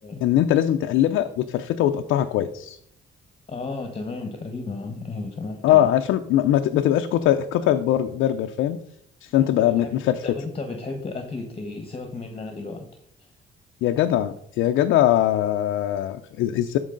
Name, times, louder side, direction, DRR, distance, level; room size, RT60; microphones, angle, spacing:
voice 1, 0.2-2.8 5.6-8.8 9.2-10.2 13.8-16.8, left 12 dB, 90° left, 6 dB, 0.5 m, -21 dB
voice 2, 3.5-5.9 9.3-9.9 10.2-12.9 13.2-13.3, left 3 dB, 30° left, 5 dB, 1.2 m, -33 dB
12.5 x 4.7 x 3.8 m, 0.68 s
cardioid pair, 90°, 20 cm